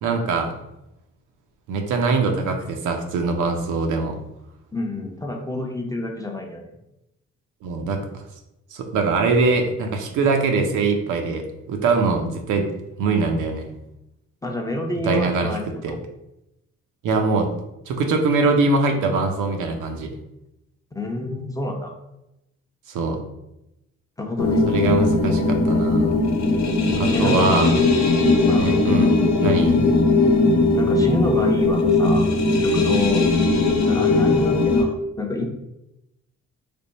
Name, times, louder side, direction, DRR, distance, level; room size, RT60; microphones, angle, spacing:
voice 1, 0.0-0.5 1.7-4.2 7.6-8.0 8.7-12.7 13.0-13.7 15.0-15.5 15.8-15.9 17.0-17.5 17.9-20.1 22.9-23.2 24.7-26.1 27.0-27.8 28.6-29.9, right 3 dB, 80° right, 4 dB, 0.7 m, -22 dB
voice 2, 4.7-6.7 14.4-16.0 20.9-22.0 24.2-24.6 27.1-27.9 28.5-28.7 30.8-32.3 32.6-33.3 33.9-35.5, left 1 dB, 10° left, 1 dB, 0.6 m, -28 dB
sound 1, 24.4-34.8, left 3 dB, 65° left, 0.7 m, -19 dB
3.4 x 2.2 x 3.9 m, 0.88 s
cardioid pair, 90°, 30 cm